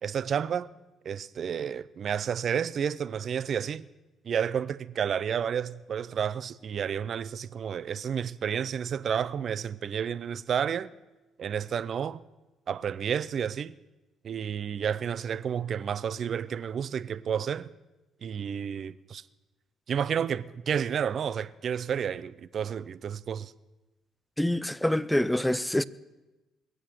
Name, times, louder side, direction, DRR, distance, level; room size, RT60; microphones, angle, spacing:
voice 1, 0.0-0.7 1.0-3.9 4.2-10.9 11.4-12.2 12.7-13.7 14.2-17.7 18.2-19.2 19.9-23.5, right 8 dB, 55° right, 0.6 m, -31 dB
voice 2, 24.4-25.8, left 1 dB, 5° left, 0.6 m, -26 dB
21.0 x 8.6 x 7.7 m
supercardioid pair, 70°, 0 cm